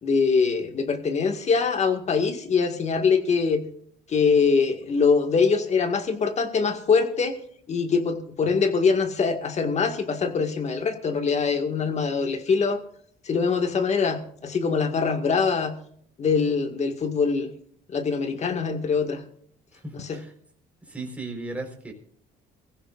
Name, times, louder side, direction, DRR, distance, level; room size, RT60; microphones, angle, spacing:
voice 1, 0.0-3.6 4.1-7.3 7.7-12.8 13.2-15.8 16.2-17.5 17.9-19.2 20.0-20.2, left 5 dB, 40° left, 7 dB, 1.9 m, -23 dB
voice 2, 19.7-20.3 20.8-21.9, right 2 dB, 10° right, 2 dB, 4.3 m, -36 dB
24.0 x 15.5 x 2.5 m, 0.62 s
cardioid pair, 110°, 17 cm